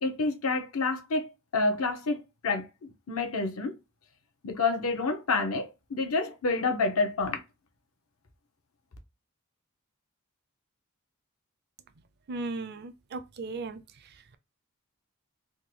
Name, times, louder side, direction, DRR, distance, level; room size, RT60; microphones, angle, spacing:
voice 1, 0.0-3.7 4.4-7.4, left 3 dB, 75° left, 0.7 m, -29 dB
voice 2, 12.3-13.8, right 3 dB, 50° right, 0.4 m, -36 dB
3.5 x 2.2 x 3.0 m
head